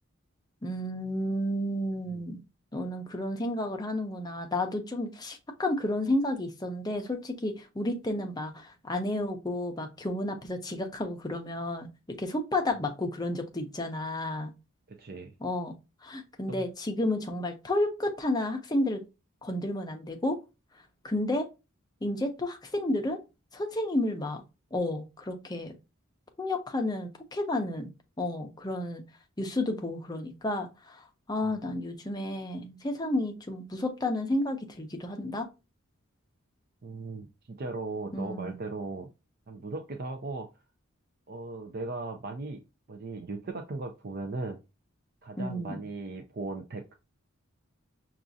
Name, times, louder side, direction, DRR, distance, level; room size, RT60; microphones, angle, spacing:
voice 1, 0.6-2.4 2.7-14.5 15.4-15.7 16.0-19.0 19.4-20.4 21.0-21.5 22.0-23.2 23.5-24.4 24.7-25.7 26.4-27.9 28.2-29.0 29.4-35.5 38.1-38.6 45.4-45.8, left 1 dB, 20° left, 4 dB, 0.6 m, -31 dB
voice 2, 15.0-15.3 16.5-16.7 31.4-31.6 36.8-39.1 39.5-40.5 41.3-42.6 42.9-44.6 45.2-47.0, right 3 dB, 45° right, 5 dB, 0.4 m, -37 dB
5.8 x 2.4 x 2.6 m, 0.27 s
head